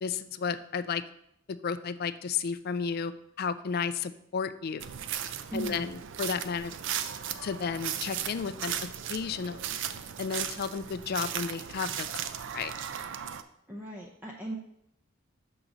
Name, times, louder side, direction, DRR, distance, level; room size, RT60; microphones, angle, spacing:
voice 1, 0.0-1.0 1.5-3.1 3.4-4.8 5.5-5.9 6.2-6.7 7.4-8.7 9.1-9.6 10.2-12.1 12.5-12.7, left 6 dB, 45° left, 12 dB, 0.3 m, -32 dB
sound 1, 4.8-13.4, right 9 dB, 60° right, 0.4 m, -36 dB
voice 2, 5.5-6.0 13.7-14.6, right 1 dB, 10° right, -3 dB, 0.6 m, -38 dB
6.5 x 3.9 x 6.0 m, 0.77 s
head